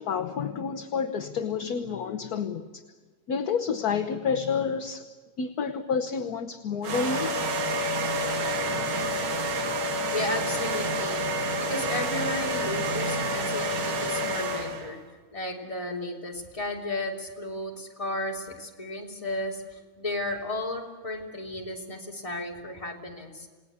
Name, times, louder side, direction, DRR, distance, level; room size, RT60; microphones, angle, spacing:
voice 1, 0.0-2.8 3.3-5.1 5.4-7.4, left 6 dB, 55° left, 5 dB, 1.4 m, -29 dB
sound 1, 6.8-15.0, right 1 dB, 90° right, 2.5 m, -28 dB
voice 2, 10.1-15.0 15.3-23.5, left 1 dB, 15° left, -1 dB, 3.3 m, -34 dB
28.5 x 19.0 x 8.3 m, 1.5 s
omnidirectional pair, 2.2 m